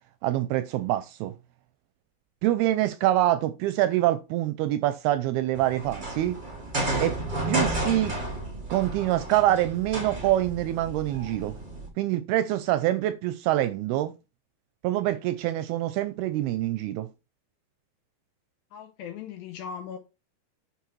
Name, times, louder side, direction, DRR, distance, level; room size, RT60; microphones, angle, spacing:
voice 1, 0.2-1.3 2.4-6.4 7.0-7.2 7.5-8.2 8.7-11.5 12.0-14.1 14.8-17.1, right 14 dB, 80° right, 2.3 m, -25 dB
sound 1, 5.5-11.9, right 2 dB, 65° right, 0.4 m, -32 dB
voice 2, 18.7-20.0, left 7 dB, 80° left, 2.2 m, -39 dB
10.5 x 4.5 x 3.1 m
omnidirectional pair, 4.9 m